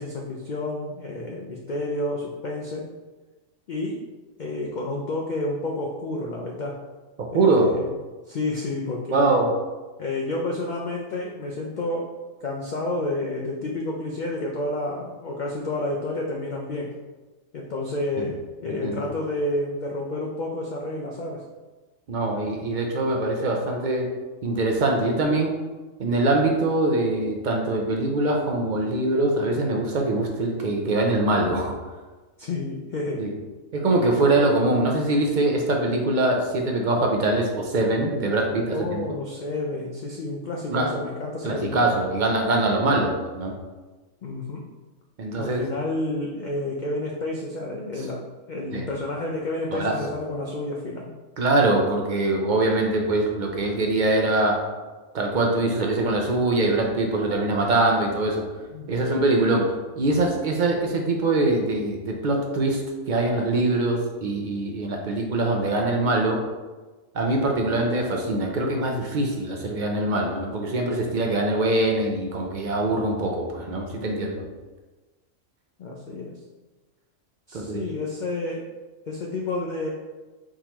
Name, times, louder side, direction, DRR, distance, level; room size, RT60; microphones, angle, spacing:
voice 1, 0.0-2.9 3.7-4.0 4.4-6.8 7.3-7.9 8.3-9.4 10.0-12.1 12.4-16.9 17.5-21.4 32.4-33.3 38.7-41.9 44.2-44.6 45.4-48.2 48.5-51.1 58.7-59.1 75.8-76.4 77.5-78.6 79.1-79.9, left 2 dB, 75° left, -1 dB, 0.4 m, -30 dB
voice 2, 7.3-7.8 9.1-9.5 18.2-18.3 18.7-19.0 22.1-24.1 24.4-25.6 26.0-31.7 33.2-33.3 33.7-39.0 40.7-41.0 41.4-43.5 45.2-45.6 48.7-48.8 49.7-49.9 51.4-54.7 55.1-58.5 58.9-62.8 63.1-66.4 67.1-74.4 77.5-77.8, right 2 dB, 55° right, 1 dB, 0.5 m, -23 dB
4.5 x 3.7 x 2.9 m, 1.2 s
omnidirectional pair, 1.4 m